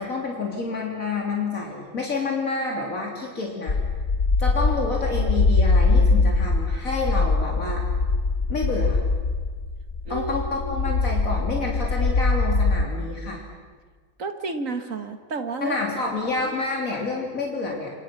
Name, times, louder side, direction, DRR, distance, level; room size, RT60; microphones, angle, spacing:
voice 1, 0.0-3.8 4.4-7.8 8.5-9.1 10.1-13.4 15.6-17.9, left 3 dB, 80° left, -1 dB, 3.6 m, -28 dB
sound 1, 3.7-12.9, left 3 dB, 45° left, 1.3 m, -22 dB
voice 2, 10.1-10.9 14.2-15.8, right 3 dB, 75° right, 7 dB, 2.1 m, -31 dB
29.5 x 25.0 x 6.0 m, 1.5 s
omnidirectional pair, 1.4 m